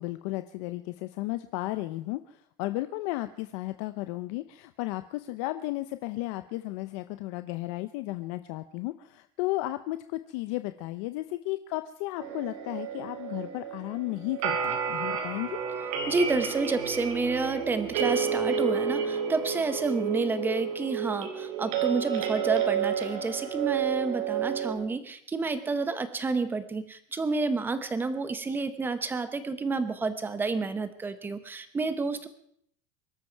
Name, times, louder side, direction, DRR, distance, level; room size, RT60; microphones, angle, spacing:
voice 1, 0.0-15.6, left 18 dB, 55° left, 10 dB, 0.7 m, -34 dB
sound 1, 12.2-24.7, right 7 dB, 70° right, 3.9 m, -30 dB
voice 2, 16.1-32.3, right 3 dB, 10° right, 11 dB, 1.0 m, -30 dB
24.0 x 13.0 x 4.6 m, 0.67 s
cardioid pair, 175°, 19 cm